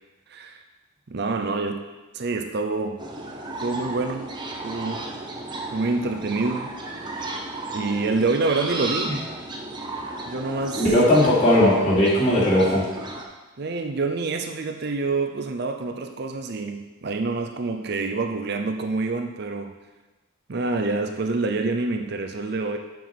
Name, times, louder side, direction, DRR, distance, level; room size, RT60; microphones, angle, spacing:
voice 1, 0.3-0.6 1.1-1.8 2.1-3.0 3.6-4.3 4.6-5.1 5.7-6.8 7.7-9.2 10.3-10.9 13.6-19.7 20.5-22.8, right 3 dB, 50° right, 5 dB, 0.6 m, -27 dB
sound 1, 3.0-13.2, right 2 dB, 20° right, 0.9 m, -34 dB
voice 2, 10.7-12.8, left 1 dB, 30° left, -8 dB, 2.9 m, -18 dB
7.2 x 6.0 x 6.0 m, 1.2 s
head